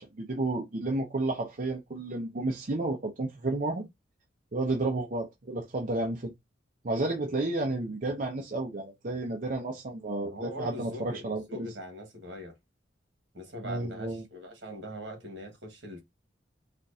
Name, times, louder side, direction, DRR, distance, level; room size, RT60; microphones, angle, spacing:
voice 1, 0.0-3.9 4.5-6.3 6.8-11.7 13.6-14.2, right 2 dB, 45° right, 0.6 m, -31 dB
voice 2, 10.2-12.6 13.3-16.0, equal, 70° right, 1.5 m, -42 dB
4.3 x 2.4 x 2.7 m
head